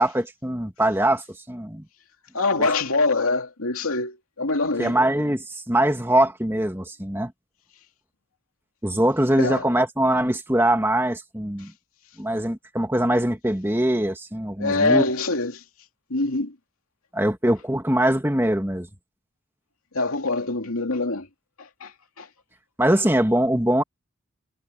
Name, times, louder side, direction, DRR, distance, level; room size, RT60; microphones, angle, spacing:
voice 1, 0.0-1.8 4.8-7.3 8.8-11.7 12.2-15.1 17.1-18.9 22.8-23.8, right 1 dB, 10° right, 1.9 m, -22 dB
voice 2, 2.3-5.0 9.4-9.7 11.6-11.7 14.6-15.6 16.1-16.6 19.9-21.3 21.6-22.3, left 3 dB, 90° left, 2.7 m, -24 dB
head